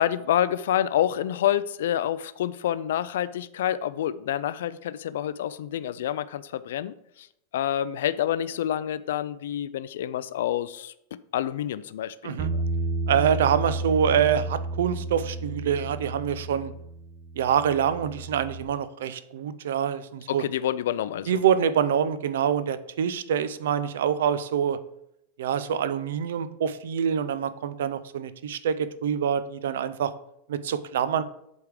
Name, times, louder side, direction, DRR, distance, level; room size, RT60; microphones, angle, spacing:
voice 1, 0.0-7.3 7.5-10.9 11.3-12.6 20.3-21.4, left 11 dB, 75° left, 15 dB, 0.3 m, -28 dB
Bass guitar, 12.4-18.6, right 2 dB, 15° right, 0.4 m, -32 dB
voice 2, 13.1-16.7 17.4-20.4 21.3-24.8 25.4-30.1 30.5-31.2, right 8 dB, 90° right, 14 dB, 0.5 m, -25 dB
8.1 x 3.5 x 4.8 m, 0.79 s
supercardioid pair, 170°, 0 cm